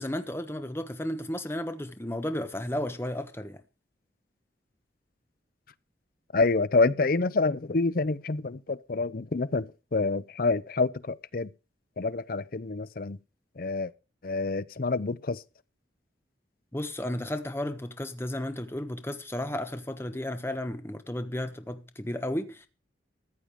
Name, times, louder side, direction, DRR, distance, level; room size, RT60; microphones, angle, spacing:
voice 1, 0.0-3.6 16.7-22.7, left 1 dB, 15° left, 1.1 m, -33 dB
voice 2, 6.3-11.5 12.0-13.2 13.6-13.9 14.2-15.4, left 3 dB, 50° left, 0.6 m, -27 dB
14.5 x 8.7 x 4.9 m
head